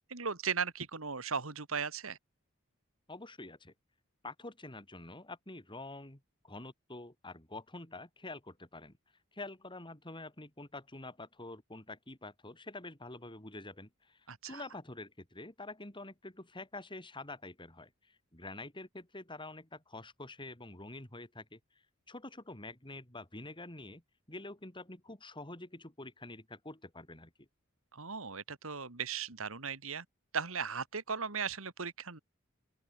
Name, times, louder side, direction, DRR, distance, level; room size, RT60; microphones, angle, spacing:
voice 1, 0.1-2.2 14.3-14.6 27.9-30.1 30.3-32.2, right 6 dB, 80° right, 2.3 m, -37 dB
voice 2, 3.1-3.7 4.2-9.0 9.3-21.6 22.1-24.0 24.3-27.5, left 2 dB, 25° left, 4.4 m, -47 dB
open air
head